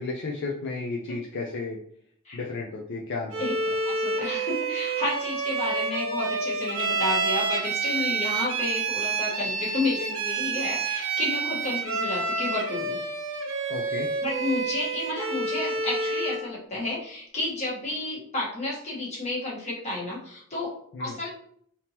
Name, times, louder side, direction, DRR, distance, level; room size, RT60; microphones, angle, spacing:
voice 1, 0.0-1.8 2.3-3.7 13.7-14.1 20.9-21.2, left 3 dB, 50° left, -2 dB, 0.4 m, -33 dB
Bowed string instrument, 3.3-16.5, right 4 dB, 65° right, 0.6 m, -29 dB
voice 2, 3.8-13.0 14.2-21.3, left 2 dB, 30° left, -6 dB, 1.3 m, -31 dB
3.5 x 2.8 x 2.8 m, 0.65 s
head